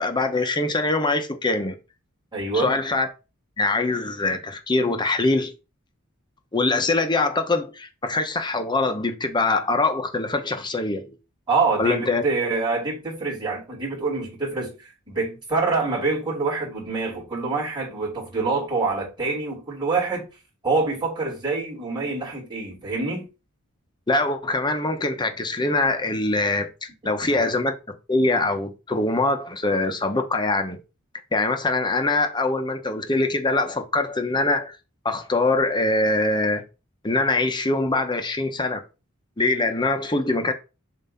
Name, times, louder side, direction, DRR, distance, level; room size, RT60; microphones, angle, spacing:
voice 1, 0.0-1.7 2.5-3.1 3.6-5.5 6.5-11.2 11.8-12.2 24.1-27.8 28.1-30.8 31.3-34.8 35.0-36.6 37.0-38.8 39.4-40.5, left 2 dB, 20° left, 0.9 m, -23 dB
voice 2, 2.3-2.8 11.5-20.2 20.6-23.2 27.2-27.3, right 3 dB, 20° right, 3.3 m, -26 dB
7.3 x 2.8 x 5.6 m
head